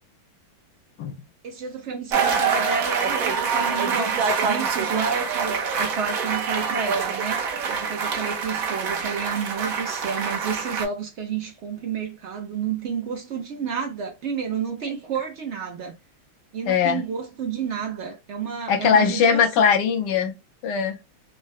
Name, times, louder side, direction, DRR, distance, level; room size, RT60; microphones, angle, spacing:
voice 1, 1.4-15.9 16.5-19.7, right 6 dB, 85° right, 0.6 m, -30 dB
sound 1, 2.1-10.8, right 6 dB, 60° right, 1.0 m, -25 dB
voice 2, 16.7-17.0 18.7-20.3 20.6-21.0, left 7 dB, 75° left, 1.1 m, -20 dB
3.7 x 2.1 x 2.3 m
omnidirectional pair, 2.2 m